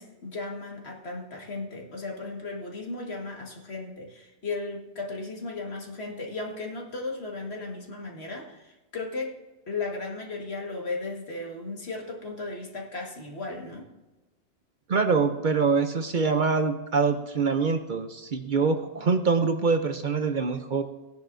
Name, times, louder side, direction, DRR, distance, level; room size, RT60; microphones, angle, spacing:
voice 1, 0.0-9.4 9.7-13.9, left 3 dB, 65° left, 1 dB, 1.9 m, -36 dB
voice 2, 14.9-20.8, right 4 dB, 50° right, 7 dB, 0.7 m, -24 dB
16.5 x 10.5 x 2.6 m, 1.1 s
omnidirectional pair, 1.2 m